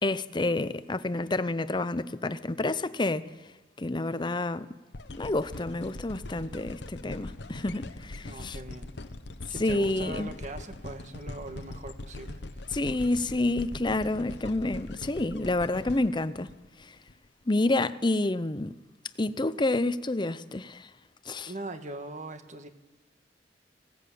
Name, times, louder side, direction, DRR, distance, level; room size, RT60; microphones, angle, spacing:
voice 1, 0.0-3.3 3.8-4.7 5.1-8.6 9.6-10.3 12.7-16.5 16.8-16.9 17.5-18.7 19.2-20.9 21.3-21.5, left 2 dB, 25° left, 0.7 m, -29 dB
sound 1, 4.9-17.1 17.7-17.8, left 2 dB, 70° left, 1.0 m, -42 dB
voice 2, 8.2-8.9 9.5-12.8 21.5-22.7, right 2 dB, 40° right, 1.5 m, -41 dB
19.5 x 17.0 x 8.5 m
head